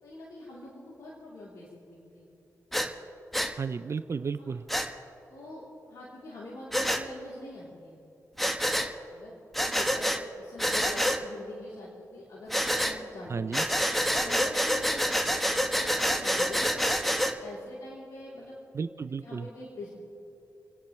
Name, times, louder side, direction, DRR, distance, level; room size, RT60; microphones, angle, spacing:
voice 1, 0.0-2.2 4.4-4.5 5.3-8.0 9.1-9.3 9.6-13.8 14.1-15.6 15.9-18.6 19.2-19.9, left 2 dB, 80° left, -7 dB, 3.4 m, -44 dB
Breathing, 2.7-2.9 3.3-3.5 4.7-4.9 6.7-7.0 8.4-8.9 9.5-10.2 10.6-11.2 12.5-13.0 13.5-17.3, equal, ahead, 1.2 m, -27 dB
voice 2, 3.6-4.7 13.3-13.7 18.7-19.5, right 5 dB, 50° right, 12 dB, 0.5 m, -33 dB
29.5 x 9.9 x 3.2 m, 2.7 s
cardioid pair, 60°, 6 cm